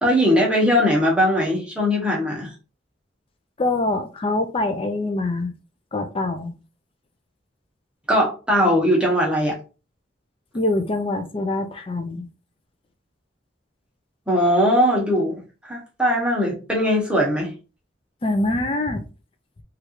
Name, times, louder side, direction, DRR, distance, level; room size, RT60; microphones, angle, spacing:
voice 1, 0.0-2.5 8.1-9.6 14.3-15.4 15.7-17.5, equal, 5° right, -3 dB, 0.8 m, -20 dB
voice 2, 3.6-5.5 5.9-6.5 10.5-12.3 18.2-19.1, left 2 dB, 30° left, 7 dB, 0.4 m, -24 dB
3.2 x 2.4 x 3.0 m, 0.33 s
head